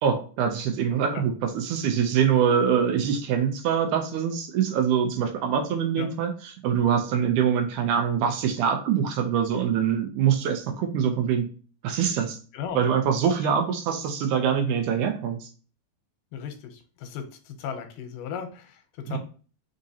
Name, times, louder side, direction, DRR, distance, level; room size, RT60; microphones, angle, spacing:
voice 1, 0.0-11.5 11.8-12.4 12.7-15.5 19.1-19.2, right 8 dB, 75° right, 5 dB, 2.0 m, -24 dB
voice 2, 16.3-19.2, left 7 dB, 80° left, 6 dB, 2.3 m, -36 dB
5.0 x 3.8 x 2.7 m, 0.38 s
omnidirectional pair, 3.8 m